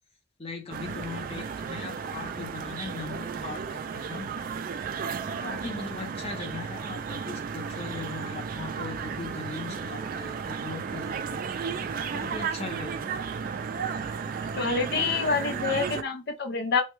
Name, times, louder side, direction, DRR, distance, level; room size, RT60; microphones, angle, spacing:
voice 1, 0.4-4.3 5.2-11.4 12.1-13.2 14.0-14.4, left 3 dB, 35° left, 0.8 m, -39 dB
sound 1, 0.7-16.0, right 6 dB, 45° right, 0.3 m, -34 dB
voice 2, 14.5-16.8, left 5 dB, 60° left, 0.5 m, -27 dB
3.1 x 2.2 x 3.1 m
head